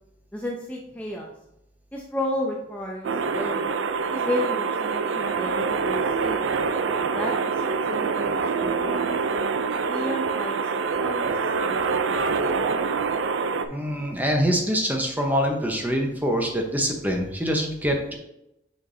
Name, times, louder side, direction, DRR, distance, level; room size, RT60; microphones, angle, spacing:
voice 1, 0.3-1.3 1.9-3.7 4.1-6.5 7.1-9.1 9.9-10.6 11.0-12.1, left 1 dB, 10° left, -2 dB, 0.6 m, -32 dB
sound 1, 3.0-13.7, right 5 dB, 90° right, 0.5 m, -25 dB
voice 2, 13.7-18.1, equal, 10° right, 2 dB, 0.9 m, -24 dB
6.4 x 5.9 x 2.7 m, 0.84 s
head